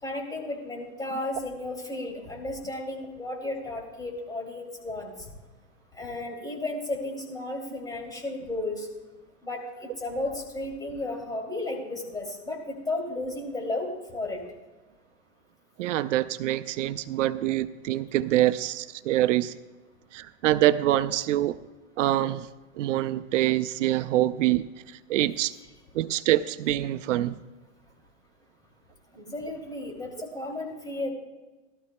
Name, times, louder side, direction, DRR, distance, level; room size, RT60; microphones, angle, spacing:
voice 1, 0.0-5.1 5.9-8.9 9.4-14.4 29.1-31.1, left 2 dB, 10° left, -1 dB, 2.7 m, -33 dB
voice 2, 15.8-19.5 20.1-21.6 22.0-22.5 22.8-25.5 25.9-27.4, right 14 dB, 80° right, 13 dB, 0.6 m, -25 dB
18.5 x 13.0 x 2.2 m, 1.2 s
supercardioid pair, 130°, 36 cm